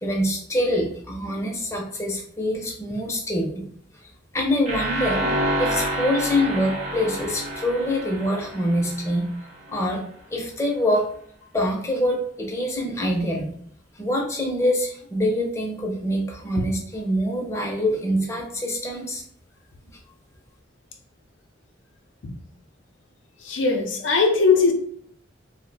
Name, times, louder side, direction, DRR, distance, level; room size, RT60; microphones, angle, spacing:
voice 1, 0.0-3.7 4.3-5.3 5.6-9.3 9.7-10.0 10.3-11.1 11.5-13.5 14.0-19.2, left 1 dB, 15° left, -1 dB, 0.5 m, -25 dB
sound 1, 4.7-9.5, right 1 dB, 40° right, 0.6 m, -28 dB
voice 2, 23.4-24.7, left 4 dB, 85° left, 3 dB, 0.5 m, -19 dB
2.6 x 2.1 x 3.9 m, 0.62 s
head